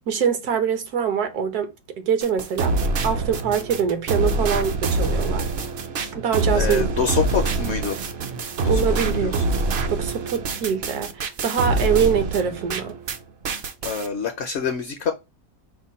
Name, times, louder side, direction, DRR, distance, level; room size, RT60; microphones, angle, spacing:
voice 1, 0.1-2.8 3.0-5.5 6.2-6.9 8.7-9.5 9.9-12.9, right 7 dB, 75° right, 1.4 m, -24 dB
sound 1, 2.2-13.2 13.4-14.1, right 2 dB, 60° right, 0.7 m, -25 dB
voice 2, 6.5-8.0 9.1-9.4 13.8-15.1, left 6 dB, 60° left, 0.7 m, -26 dB
5.0 x 2.2 x 4.1 m
omnidirectional pair, 1.7 m